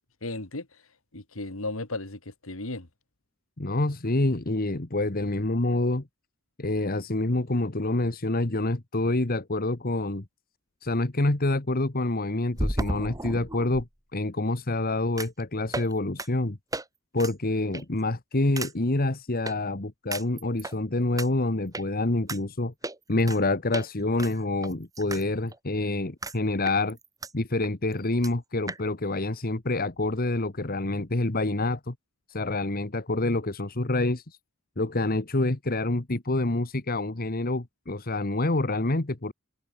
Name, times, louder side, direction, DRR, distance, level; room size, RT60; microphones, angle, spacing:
voice 1, 0.2-0.7 1.1-2.9, left 2 dB, 75° left, 3.0 m, -35 dB
voice 2, 3.6-6.0 6.6-10.2 10.8-16.6 17.1-22.7 23.1-27.0 27.3-31.9 32.3-34.4 34.8-39.3, left 2 dB, 45° left, 1.5 m, -27 dB
sound 1, 10.1-10.2 12.5-13.9 15.2-15.4 15.7-15.9 16.2-16.3 16.7-16.8 17.2-17.3 17.7-18.0 18.6-18.7 19.5-19.6 20.1-20.7 21.2-21.3 21.7-21.8 22.3-22.4 22.8-23.4 23.7-23.9 24.2-25.2 25.5-25.6 26.2-26.4 26.7-27.3 27.6-27.7 27.9-28.0 28.2-28.3 28.7-28.8, right 1 dB, 15° right, 6.5 m, -33 dB
head